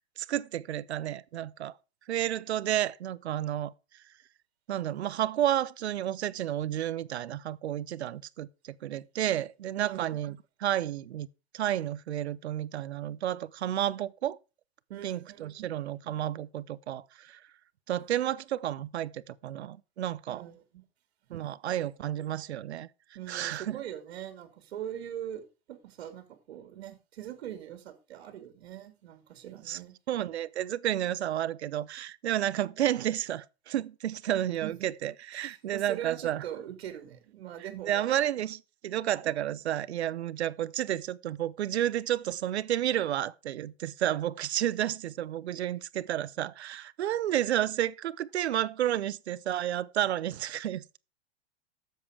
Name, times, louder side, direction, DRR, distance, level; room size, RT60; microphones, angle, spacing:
voice 1, 0.2-1.7 2.1-3.7 4.7-10.4 10.6-11.3 11.5-14.4 15.0-17.4 17.9-20.4 21.3-22.9 23.3-23.8 29.7-29.8 30.1-36.4 37.6-51.0, right 12 dB, 85° right, 0.8 m, -31 dB
voice 2, 9.8-10.2 14.9-15.7 20.3-20.8 23.1-29.9 34.6-34.9 35.3-38.2, right 11 dB, 70° right, 2.5 m, -42 dB
12.5 x 7.6 x 5.0 m
hypercardioid pair, 135°, 32 cm